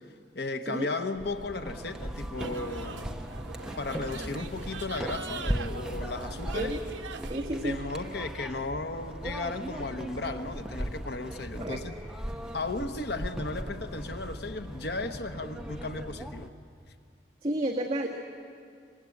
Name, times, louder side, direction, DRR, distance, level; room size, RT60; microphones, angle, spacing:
voice 1, 0.3-3.1 3.8-6.7 7.6-11.9 12.5-16.5, left 3 dB, 55° left, 7 dB, 1.1 m, -35 dB
sound 1, 1.1-16.5, equal, 5° right, 0.9 m, -38 dB
sound 2, 2.4-7.5, right 5 dB, 75° right, 0.8 m, -43 dB
voice 2, 7.3-7.8 11.6-11.8 17.4-18.1, right 1 dB, 30° right, -3 dB, 1.8 m, -31 dB
26.0 x 21.5 x 8.5 m, 2.2 s
head